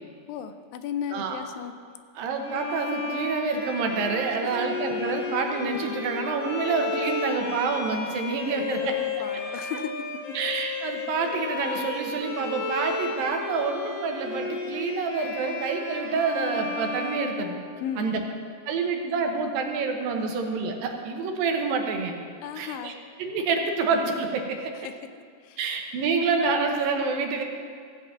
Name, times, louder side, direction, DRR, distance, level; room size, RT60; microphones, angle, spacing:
voice 1, 0.3-1.7 4.4-4.7 8.5-10.4 17.8-18.1 22.4-23.0 24.7-24.9 25.4-25.6, left 8 dB, 85° left, 10 dB, 2.3 m, -35 dB
voice 2, 2.2-9.0 10.4-17.5 18.0-18.2 18.7-22.1 22.6-22.9 23.2-24.7 25.6-27.4, right 4 dB, 85° right, 3 dB, 2.9 m, -27 dB
Bowed string instrument, 2.4-18.1, left 4 dB, 60° left, 3.7 m, -33 dB
15.5 x 5.2 x 8.2 m, 2.2 s
omnidirectional pair, 4.0 m